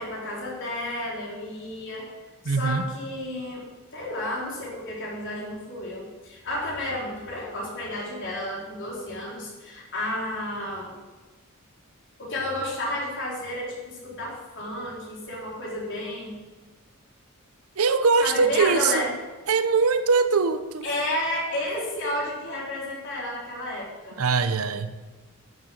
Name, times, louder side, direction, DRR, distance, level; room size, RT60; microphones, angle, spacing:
voice 1, 0.0-2.1 2.4-3.6 3.9-10.9 12.2-16.4 18.2-19.1 20.8-24.2, left 1 dB, 60° left, -4 dB, 3.9 m, -31 dB
voice 2, 2.4-2.8 17.8-19.1 19.5-20.9 24.2-24.9, right 4 dB, 85° right, 11 dB, 0.7 m, -22 dB
10.5 x 6.7 x 6.3 m, 1.3 s
head